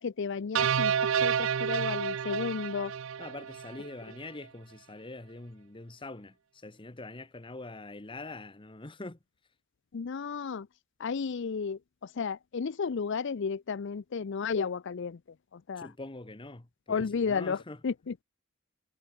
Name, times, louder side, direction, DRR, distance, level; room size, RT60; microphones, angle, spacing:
voice 1, 0.0-2.9 9.9-10.7 11.0-15.2 15.5-15.9 16.9-18.2, left 5 dB, 60° left, 0.5 m, -33 dB
sound 1, 0.5-3.9, right 8 dB, 65° right, 0.5 m, -29 dB
voice 2, 3.2-9.2 15.8-17.8, left 2 dB, 25° left, 1.0 m, -44 dB
head